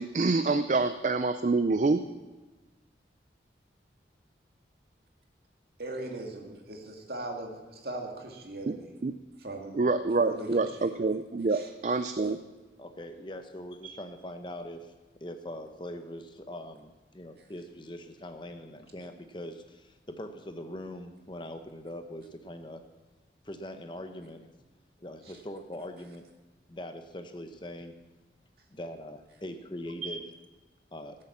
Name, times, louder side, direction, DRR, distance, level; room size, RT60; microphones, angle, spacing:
voice 1, 0.0-2.0 8.7-8.8 9.0-9.1 9.7-12.4 13.8-14.0 30.0-30.2, right 3 dB, 45° right, 10 dB, 0.4 m, -27 dB
voice 2, 5.8-8.9 9.4-9.8 10.2-11.0 11.5-11.7 25.2-25.4, right 2 dB, 60° right, 1 dB, 2.2 m, -39 dB
voice 3, 12.8-14.8 15.2-19.8 20.1-22.8 23.5-24.5 25.0-26.2 26.7-27.9 28.7-30.2 30.9-31.2, left 1 dB, 25° left, 7 dB, 0.9 m, -42 dB
16.5 x 7.7 x 7.3 m, 1.2 s
head